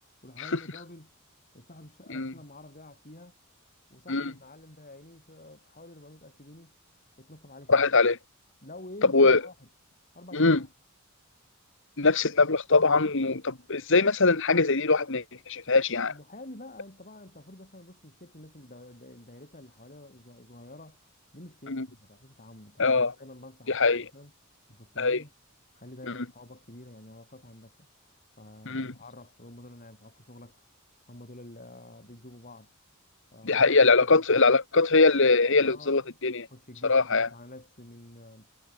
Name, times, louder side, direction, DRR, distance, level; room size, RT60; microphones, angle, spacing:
voice 1, 0.2-1.1 1.5-3.4 3.9-6.7 7.2-7.8 8.6-9.5 10.1-10.7 16.1-21.0 21.3-24.3 24.7-25.3 25.7-27.9 28.4-30.6 31.1-32.7 33.3-33.6 34.0-34.6 35.6-36.0 36.5-38.5, left 1 dB, 40° left, 7.9 m, -48 dB
voice 2, 7.7-8.2 9.1-9.4 10.3-10.6 12.0-16.1 21.7-21.9 22.8-23.1 23.7-24.1 25.0-25.2 28.7-28.9 33.4-36.5 36.8-37.3, left 3 dB, 60° left, 1.9 m, -22 dB
head